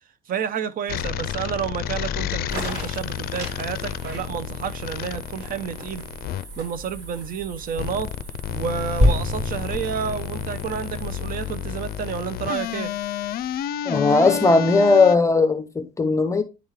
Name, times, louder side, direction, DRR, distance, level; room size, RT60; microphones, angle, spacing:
voice 1, 0.3-6.1 6.6-8.1 8.5-12.9, right 7 dB, 55° right, 0.8 m, -30 dB
sound 1, 0.9-6.4 7.7-15.2, left 10 dB, 65° left, 0.4 m, -30 dB
sound 2, 2.5-13.7, right 1 dB, 75° right, 4.0 m, -41 dB
sound 3, 9.0-12.6 13.2-13.3, left 1 dB, 40° right, 3.3 m, -25 dB
voice 2, 13.9-16.4, left 3 dB, 20° left, 0.7 m, -18 dB
10.5 x 3.7 x 3.2 m
cardioid pair, 110°, 17 cm